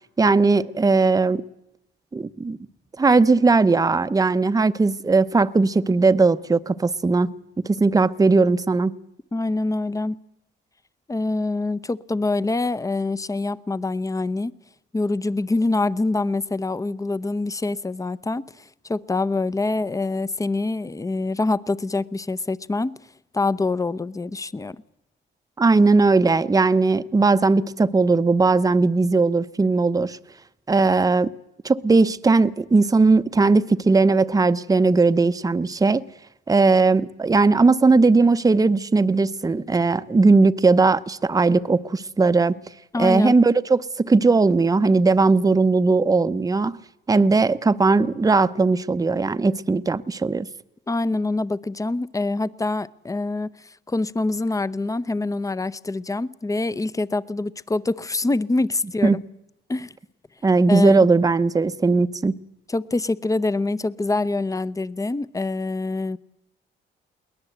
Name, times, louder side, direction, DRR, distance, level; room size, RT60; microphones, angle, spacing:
voice 1, 0.2-1.4 2.1-2.6 3.0-7.3 7.6-8.9 25.6-30.2 30.7-31.3 31.6-36.0 36.5-42.5 43.0-46.8 47.1-50.5 59.0-59.2 60.4-62.3, right 3 dB, 20° right, 0.8 m, -18 dB
voice 2, 9.3-10.2 11.1-14.5 14.9-22.9 23.3-24.8 42.9-43.3 50.9-53.5 53.9-59.2 59.7-59.9 60.7-61.1 62.7-66.2, left 2 dB, 15° left, 0.7 m, -25 dB
22.0 x 19.0 x 8.0 m
cardioid pair, 90°, 20 cm